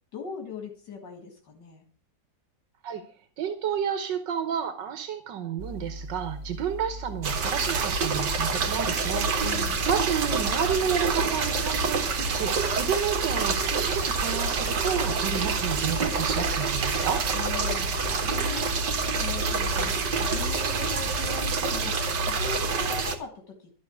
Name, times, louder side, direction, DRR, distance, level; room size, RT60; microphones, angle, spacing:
voice 1, 0.1-1.9 9.4-9.9 17.3-23.8, left 6 dB, 75° left, 3 dB, 2.4 m, -40 dB
voice 2, 3.4-9.6 9.9-17.2, right 8 dB, 90° right, 9 dB, 1.7 m, -31 dB
sound 1, 5.6-21.5, equal, 35° right, 1.4 m, -39 dB
sound 2, 7.2-23.1, right 4 dB, 75° right, 2.0 m, -27 dB
12.5 x 6.3 x 8.0 m, 0.43 s
omnidirectional pair, 1.9 m